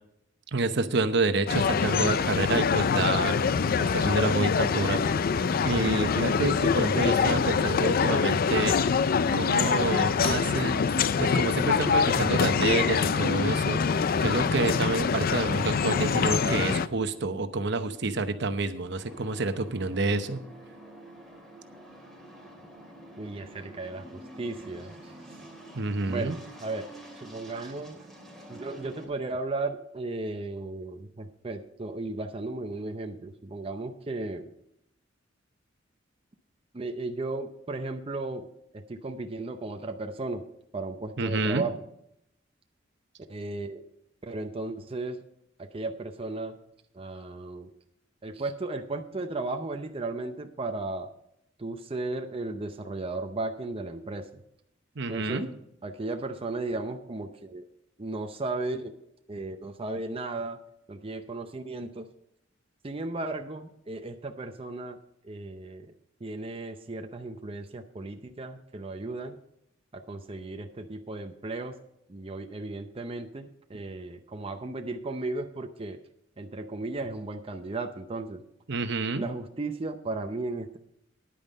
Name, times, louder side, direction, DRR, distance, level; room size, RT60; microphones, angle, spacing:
voice 1, 0.5-3.3 3.8-5.0 5.6-8.8 9.3-10.9 11.2-20.4 25.7-26.4 41.2-41.6 55.0-55.5 78.7-79.3, right 3 dB, 65° right, 9 dB, 0.9 m, -28 dB
sound 1, 1.5-16.9, left 6 dB, 50° left, 0.4 m, -25 dB
sound 2, 18.9-29.1, right 1 dB, ahead, 2.5 m, -48 dB
voice 2, 23.2-25.1 26.1-28.1 28.5-34.5 36.7-38.5 38.7-40.4 40.7-41.7 43.3-43.8 44.2-45.2 45.6-46.6 46.9-47.7 48.2-51.1 51.6-54.4 55.1-55.5 55.8-57.7 58.0-58.9 59.3-60.6 60.9-62.1 62.8-65.0 65.2-65.9 66.2-69.4 69.9-71.8 72.1-76.0 76.4-78.4 79.1-80.8, right 2 dB, 30° right, 6 dB, 0.6 m, -35 dB
10.0 x 9.0 x 5.3 m, 0.77 s
head